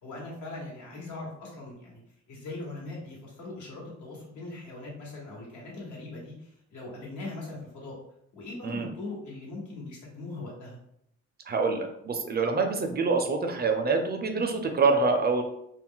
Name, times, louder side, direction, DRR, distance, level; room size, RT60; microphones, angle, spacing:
voice 1, 0.0-2.0 2.3-8.0 8.3-10.8, left 2 dB, 75° left, -3 dB, 1.2 m, -40 dB
voice 2, 11.5-15.4, right 4 dB, 35° right, 5 dB, 0.4 m, -26 dB
2.3 x 2.1 x 3.6 m, 0.75 s
cardioid pair, 90°, 30 cm